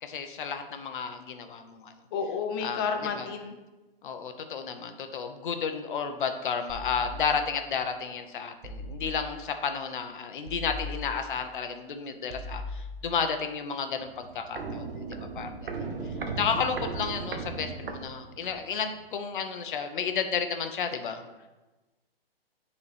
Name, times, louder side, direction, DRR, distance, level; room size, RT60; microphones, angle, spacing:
voice 1, 0.0-1.9 2.6-3.3 4.0-15.7 16.4-21.2, left 6 dB, 55° left, 7 dB, 0.9 m, -32 dB
voice 2, 2.1-3.5, left 6 dB, 25° left, 5 dB, 0.5 m, -31 dB
sound 1, 6.7-7.7 8.6-9.5 10.5-11.5 12.3-13.4, left 2 dB, 30° right, 1.1 m, -40 dB
Walk footsteps, 14.0-18.7 19.0-19.1, right 4 dB, 65° right, 1.0 m, -37 dB
9.4 x 4.2 x 3.4 m, 1.1 s
hypercardioid pair, 145°, 30 cm